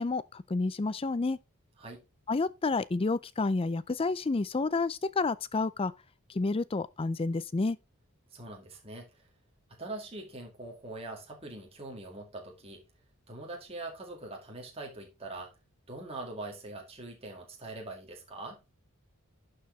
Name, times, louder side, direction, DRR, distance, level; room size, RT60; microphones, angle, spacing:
voice 1, 0.0-1.4 2.3-5.9 6.3-7.8, left 3 dB, 25° left, 0.4 m, -30 dB
voice 2, 8.3-9.3 9.8-12.8 13.3-15.5 15.9-18.6, right 2 dB, 25° right, 1.9 m, -43 dB
11.5 x 4.8 x 3.2 m
head